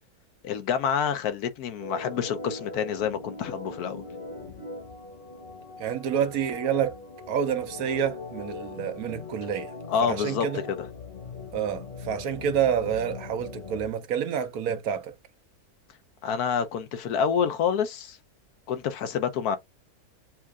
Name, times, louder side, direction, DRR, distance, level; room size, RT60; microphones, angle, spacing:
voice 1, 0.4-4.0 9.9-10.8 16.2-18.2 18.7-19.6, left 7 dB, 75° left, 1.2 m, -27 dB
Organ, 1.8-13.9, left 4 dB, 40° left, 1.0 m, -40 dB
voice 2, 5.8-7.0 7.3-9.7 10.1-10.6 11.5-15.1, right 8 dB, 70° right, 1.2 m, -28 dB
7.3 x 2.5 x 2.4 m
omnidirectional pair, 1.7 m